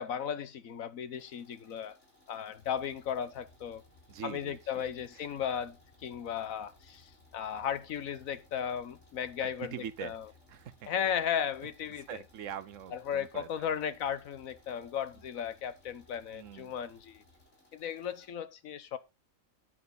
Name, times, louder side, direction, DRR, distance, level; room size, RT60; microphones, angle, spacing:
voice 1, 0.0-2.0 2.3-3.8 4.2-9.7 10.0-10.2 10.9-12.2 12.9-17.2 17.7-19.0, left 8 dB, 80° left, 1.4 m, -35 dB
sound 1, 1.1-18.3, left 1 dB, 60° left, 3.8 m, -65 dB
sound 2, 2.5-17.4, left 3 dB, 30° left, 3.7 m, -63 dB
voice 2, 4.1-4.6 5.1-5.3 9.4-10.1 10.5-10.9 12.1-13.5 16.3-16.7, right 9 dB, 70° right, 1.1 m, -43 dB
9.4 x 9.3 x 4.0 m
omnidirectional pair, 1.4 m